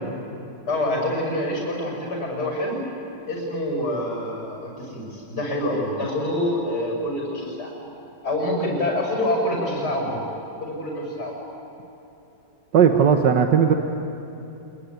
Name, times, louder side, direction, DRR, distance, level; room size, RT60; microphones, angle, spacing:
voice 1, 0.7-2.8 3.3-7.7 8.2-10.2 10.6-11.3, left 1 dB, 60° left, -1 dB, 6.8 m, -26 dB
voice 2, 12.7-13.7, right 7 dB, 70° right, 5 dB, 1.7 m, -16 dB
27.0 x 22.0 x 9.5 m, 2.9 s
omnidirectional pair, 2.0 m